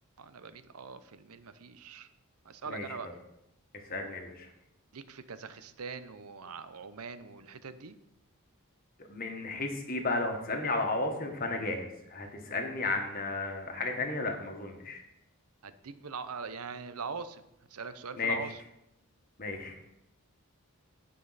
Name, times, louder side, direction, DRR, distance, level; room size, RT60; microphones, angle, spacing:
voice 1, 0.2-2.1 2.4-3.1 4.9-8.0 15.6-17.4 17.7-18.6, right 5 dB, 80° right, 12 dB, 0.7 m, -42 dB
voice 2, 2.7-3.1 3.9-4.5 9.1-15.0 18.2-18.5 19.4-19.7, left 2 dB, 40° left, 3 dB, 1.4 m, -33 dB
16.0 x 5.4 x 4.1 m, 0.85 s
head